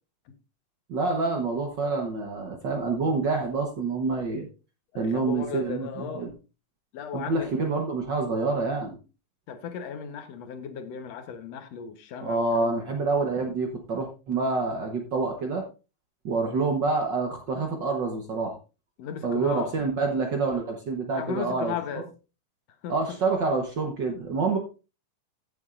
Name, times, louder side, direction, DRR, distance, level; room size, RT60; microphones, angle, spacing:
voice 1, 0.9-4.5 4.9-6.3 7.1-9.0 12.2-15.7 16.2-18.5 19.2-22.0 22.9-24.6, right 3 dB, 75° right, 1.0 m, -27 dB
voice 2, 4.9-6.3 6.9-7.6 9.5-12.8 19.0-19.8 21.2-22.1 22.8-23.2, left 7 dB, 65° left, 1.9 m, -36 dB
14.5 x 7.1 x 2.5 m
omnidirectional pair, 3.8 m